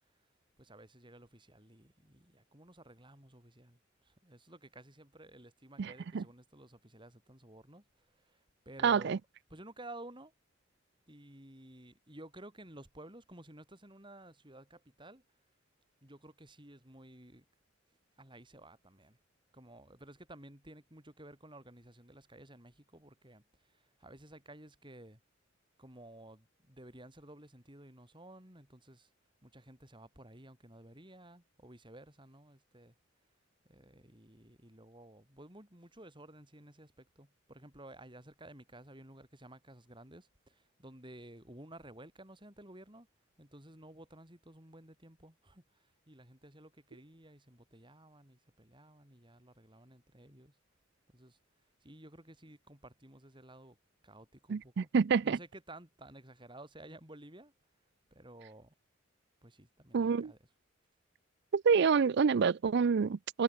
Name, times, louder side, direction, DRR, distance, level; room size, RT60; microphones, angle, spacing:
voice 1, 0.6-9.2 9.5-10.3 11.1-15.2 16.0-17.4 18.2-19.2 19.5-25.2 25.8-29.1 29.4-32.9 33.6-43.1 43.4-50.6 51.1-51.4 51.8-53.8 54.0-54.9 55.2-57.5 58.1-58.7 59.4-60.4, right 1 dB, 25° right, 7.0 m, -54 dB
voice 2, 5.8-6.2 8.8-9.2 54.5-55.4 59.9-60.3 61.5-63.4, right 6 dB, 60° right, 0.4 m, -27 dB
head